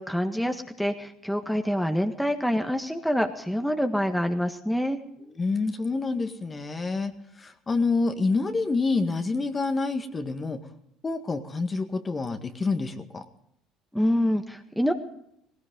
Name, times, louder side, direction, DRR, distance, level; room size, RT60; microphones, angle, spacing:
voice 1, 0.0-5.0 13.9-14.9, equal, ahead, 5 dB, 1.7 m, -26 dB
voice 2, 5.2-7.1 7.4-10.6 11.0-13.2, left 3 dB, 30° left, 6 dB, 1.9 m, -27 dB
19.0 x 18.0 x 3.8 m, 0.75 s
hypercardioid pair, 60°, 0 cm